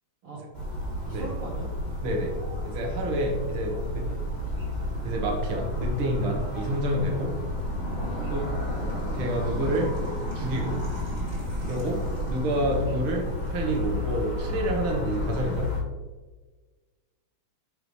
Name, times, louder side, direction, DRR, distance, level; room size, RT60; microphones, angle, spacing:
sound 1, 0.5-15.8, left 1 dB, 40° right, 0.6 m, -31 dB
voice 1, 1.1-1.7 4.0-4.2 8.0-8.1, right 3 dB, 55° right, -6 dB, 1.5 m, -40 dB
voice 2, 2.0-2.3 2.6-4.0 5.0-7.3 8.3-8.6 9.1-9.9 10.3-10.8 11.7-15.7, right 1 dB, 75° right, 0 dB, 1.2 m, -28 dB
8.7 x 5.3 x 3.1 m, 1.3 s
omnidirectional pair, 4.3 m